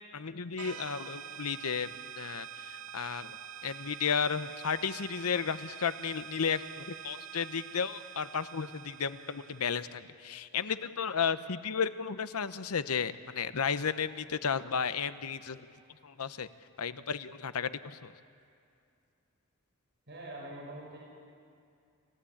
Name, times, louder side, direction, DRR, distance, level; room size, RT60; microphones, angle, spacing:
voice 1, 0.1-3.4 3.6-15.7 16.0-16.5 16.8-18.1, left 6 dB, 80° left, 13 dB, 0.8 m, -33 dB
sound 1, 0.6-10.0, right 9 dB, 75° right, 1.8 m, -46 dB
voice 2, 20.1-21.0, right 1 dB, 55° right, -4 dB, 6.0 m, -44 dB
29.0 x 15.5 x 8.6 m, 2.4 s
head